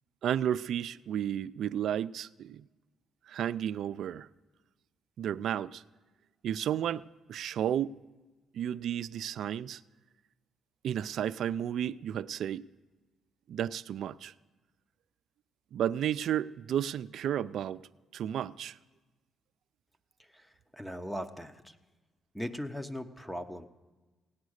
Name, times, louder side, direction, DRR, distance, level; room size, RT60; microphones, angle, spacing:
voice 1, 0.2-2.6 3.3-4.3 5.2-5.8 6.4-7.9 8.5-9.8 10.8-12.7 13.5-14.3 15.7-17.8 18.1-18.7, right 10 dB, 70° right, 0.3 m, -32 dB
voice 2, 20.3-21.8 22.3-23.7, equal, 5° left, 0.9 m, -39 dB
17.0 x 9.5 x 6.5 m
cardioid pair, 90°, 0 cm